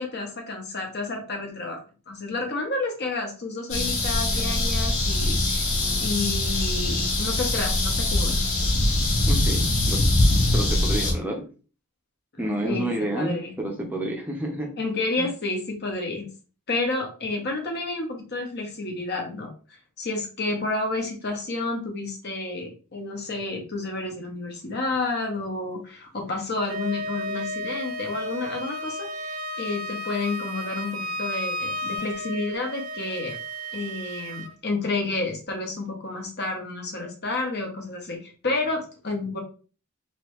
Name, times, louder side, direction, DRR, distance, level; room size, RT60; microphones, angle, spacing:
voice 1, 0.0-5.6 6.0-8.6 12.3-13.5 14.8-16.3 16.7-19.5 20.0-33.4 33.7-39.4, left 3 dB, 50° left, 2 dB, 1.1 m, -30 dB
sound 1, 3.7-11.1, left 2 dB, 70° left, 1.4 m, -23 dB
voice 2, 9.3-10.1 10.5-11.5 12.4-14.8 15.2-15.3, right 1 dB, 10° right, 0 dB, 0.6 m, -30 dB
Wind instrument woodwind instrument, 26.6-34.5, equal, 80° right, 0.6 m, -33 dB
3.4 x 3.2 x 3.0 m, 0.37 s
head